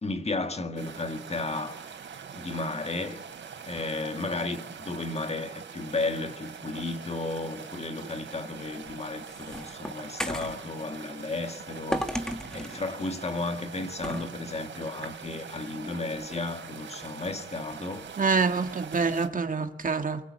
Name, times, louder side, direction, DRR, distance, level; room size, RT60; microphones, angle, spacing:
voice 1, 0.0-1.9 2.4-3.2 3.7-18.1, left 3 dB, 35° left, 1.8 m, -34 dB
sound 1, 0.8-19.3, right 6 dB, 85° right, 3.2 m, -43 dB
sound 2, 8.7-10.6 11.9-12.8 14.0-14.3, equal, 5° left, 1.8 m, -33 dB
voice 2, 18.2-20.2, right 4 dB, 45° right, 2.0 m, -26 dB
28.0 x 22.5 x 8.5 m
wide cardioid pair, 95°, 19 cm